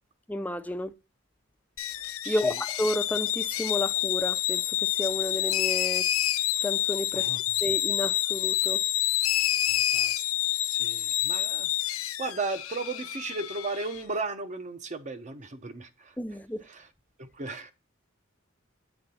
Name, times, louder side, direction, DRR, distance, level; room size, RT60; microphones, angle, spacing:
voice 1, 0.3-0.9 2.3-6.1 6.6-7.3 7.6-8.8 16.2-16.7, left 1 dB, 5° left, 0.4 m, -31 dB
sound 1, 1.8-14.0, left 14 dB, 85° left, 0.5 m, -28 dB
voice 2, 9.7-10.2 10.7-16.2 16.7-16.8 17.2-17.7, right 3 dB, 35° right, 0.7 m, -36 dB
8.0 x 3.8 x 5.5 m
head